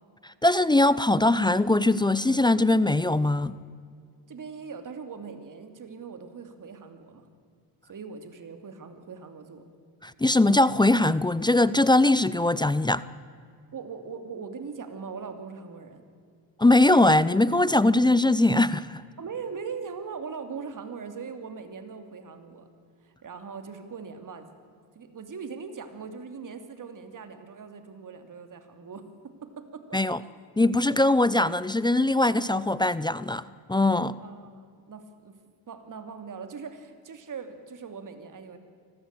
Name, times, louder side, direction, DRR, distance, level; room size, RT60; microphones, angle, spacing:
voice 1, 0.4-3.6 10.0-13.0 16.6-19.0 29.9-30.2 30.6-33.4 33.7-34.1, left 2 dB, 10° left, 17 dB, 0.6 m, -21 dB
voice 2, 4.3-7.3 7.8-9.6 13.7-16.0 19.2-22.7 23.0-24.5 24.9-30.4 34.2-35.4 35.7-38.6, right 5 dB, 40° right, 8 dB, 2.9 m, -40 dB
24.5 x 15.0 x 8.9 m, 2.2 s
supercardioid pair, 90°, 48 cm